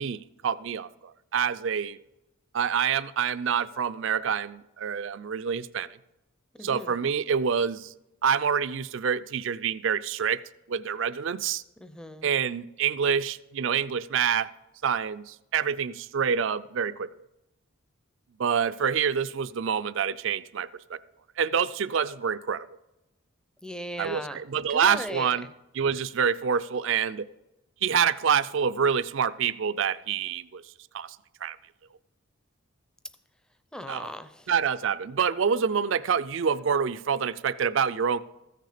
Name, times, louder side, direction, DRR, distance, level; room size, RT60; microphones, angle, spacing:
voice 1, 0.0-2.0 2.5-5.9 6.6-7.9 8.2-10.4 10.7-11.6 12.2-14.5 14.8-17.1 18.4-21.0 21.4-22.7 24.0-25.4 25.7-27.3 27.8-30.6 30.9-31.2 31.4-31.6 33.9-34.1 34.5-38.2, right 7 dB, 65° right, 15 dB, 0.4 m, -27 dB
voice 2, 6.5-7.0 11.8-12.3 23.6-24.4 24.7-25.5 33.0-33.2 33.7-34.5, equal, 5° left, 10 dB, 0.5 m, -38 dB
14.0 x 6.6 x 5.0 m, 0.96 s
head